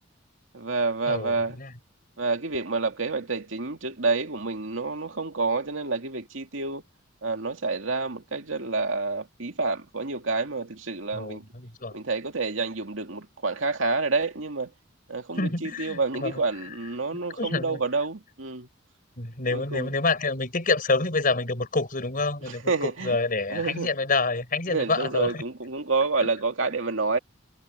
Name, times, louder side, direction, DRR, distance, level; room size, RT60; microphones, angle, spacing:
voice 1, 0.5-1.6 2.2-6.8 7.2-11.4 11.9-14.7 15.1-18.7 19.5-19.9 22.7-23.2 23.5-23.9 24.7-27.2, right 3 dB, 90° right, 2.3 m, -28 dB
voice 2, 1.1-1.7 11.1-12.0 15.4-16.7 17.4-17.8 19.2-25.4 26.2-26.3, left 3 dB, 45° left, 5.6 m, -28 dB
head